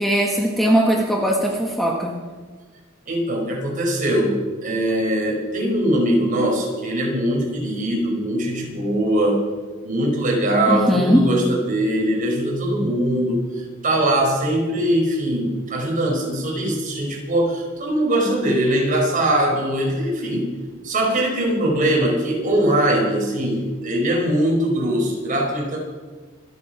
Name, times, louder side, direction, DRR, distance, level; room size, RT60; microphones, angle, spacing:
voice 1, 0.0-2.1 10.7-11.2, equal, ahead, -1 dB, 1.6 m, -19 dB
voice 2, 3.1-4.3 4.6-9.4 9.8-20.5 20.8-25.8, right 1 dB, 40° right, -2 dB, 5.3 m, -21 dB
25.5 x 8.9 x 6.1 m, 1.4 s
head